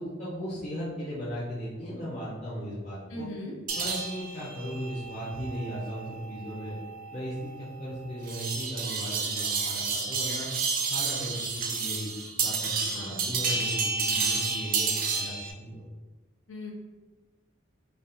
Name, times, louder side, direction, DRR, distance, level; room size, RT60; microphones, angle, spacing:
voice 1, 0.0-3.3 3.8-6.8 7.1-7.5 7.8-10.5 10.9-12.1 12.4-15.8, equal, 30° left, -9 dB, 0.6 m, -37 dB
voice 2, 3.1-3.5 12.9-13.3 16.5-16.7, left 1 dB, 85° left, -2 dB, 0.7 m, -39 dB
sound 1, 3.7-15.5, right 4 dB, 45° right, 0.3 m, -31 dB
3.3 x 2.3 x 2.6 m, 1.2 s
head